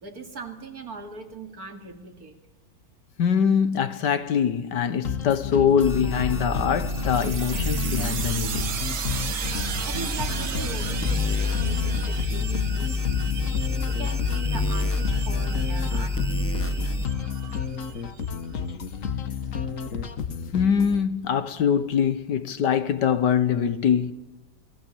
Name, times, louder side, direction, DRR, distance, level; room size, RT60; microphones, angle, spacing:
voice 1, 0.0-2.3 9.9-13.2 13.9-16.7, right 4 dB, 50° right, 3.0 m, -40 dB
voice 2, 3.2-8.7 20.5-24.1, left 7 dB, 70° left, 1.7 m, -23 dB
sound 1, 5.0-21.0, left 6 dB, 50° left, 1.5 m, -32 dB
sound 2, 5.8-17.1, left 3 dB, 10° left, 0.8 m, -28 dB
sound 3, 6.9-18.3, right 7 dB, 70° right, 2.0 m, -36 dB
28.5 x 21.5 x 8.6 m
omnidirectional pair, 2.0 m